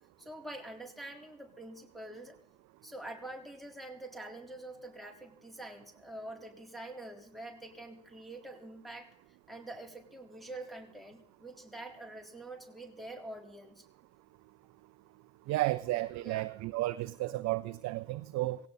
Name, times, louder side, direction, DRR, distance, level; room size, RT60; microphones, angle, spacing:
voice 1, 0.2-2.4 2.8-9.1 9.5-13.8 16.2-16.5, right 1 dB, ahead, 3.7 m, -46 dB
voice 2, 15.5-18.6, right 17 dB, 55° right, 0.7 m, -33 dB
18.0 x 17.0 x 4.1 m
figure-of-eight pair, 50°, 33 cm